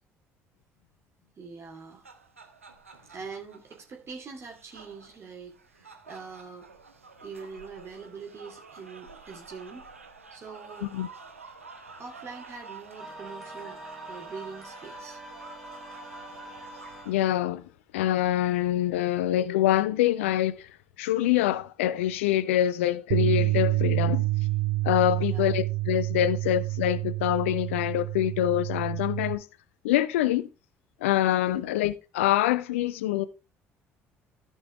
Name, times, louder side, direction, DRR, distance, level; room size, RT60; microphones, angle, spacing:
voice 1, 1.4-2.0 3.1-6.7 7.2-9.8 10.3-10.9 12.0-13.8 14.1-15.2 25.2-25.5 31.5-31.6, right 5 dB, 40° right, 2.7 m, -43 dB
sound 1, 1.7-17.1, right 4 dB, 85° right, 1.0 m, -49 dB
sound 2, 13.0-17.3, right 1 dB, ahead, 2.4 m, -44 dB
voice 2, 17.1-17.6 17.9-20.7 21.0-24.2 24.8-29.4 29.8-30.5 31.0-33.3, left 13 dB, 70° left, 0.6 m, -25 dB
Bass guitar, 23.1-29.4, right 19 dB, 65° right, 0.6 m, -28 dB
15.0 x 5.5 x 3.3 m
figure-of-eight pair, 50°, 7 cm